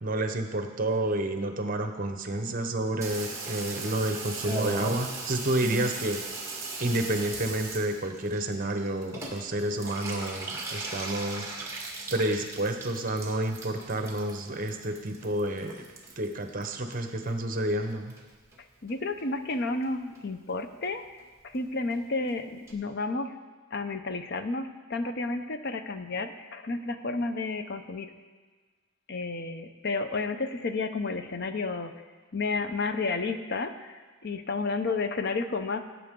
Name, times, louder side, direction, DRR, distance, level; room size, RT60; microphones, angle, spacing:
voice 1, 0.0-6.2 6.8-15.8 16.2-18.1, right 1 dB, 40° right, 6 dB, 0.9 m, -30 dB
Water tap faucet / Bathtub (filling or washing), 3.0-17.6 17.8-18.6 18.9-19.0 19.2-19.3 19.5-19.9 20.2-20.3 20.5-20.6 20.8-20.9 21.2-21.3 21.5-21.6 21.9-22.0 22.3-22.4 22.7-22.8, right 2 dB, 15° right, 1.7 m, -38 dB
voice 2, 5.6-5.9 18.8-21.0 21.4-23.3 23.7-28.1 29.1-32.0 32.3-35.8, left 3 dB, 55° left, 9 dB, 0.7 m, -31 dB
18.5 x 8.2 x 3.7 m, 1.4 s
head